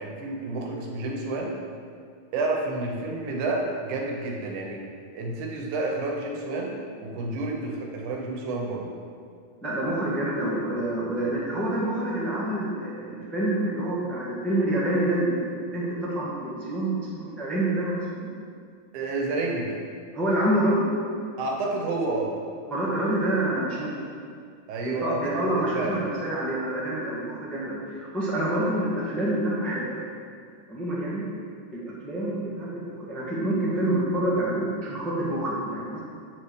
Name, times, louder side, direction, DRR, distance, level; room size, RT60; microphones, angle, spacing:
voice 1, 0.0-1.6 2.3-4.8 5.1-8.9 18.9-19.7 21.4-22.4 24.7-25.2 25.5-26.0, right 2 dB, 80° right, 0 dB, 2.5 m, -30 dB
voice 2, 9.6-18.3 20.1-20.8 22.7-23.9 24.8-30.1 30.7-31.2 31.7-36.0, right 1 dB, ahead, -7 dB, 0.4 m, -27 dB
7.7 x 4.4 x 6.4 m, 2.3 s
omnidirectional pair, 3.5 m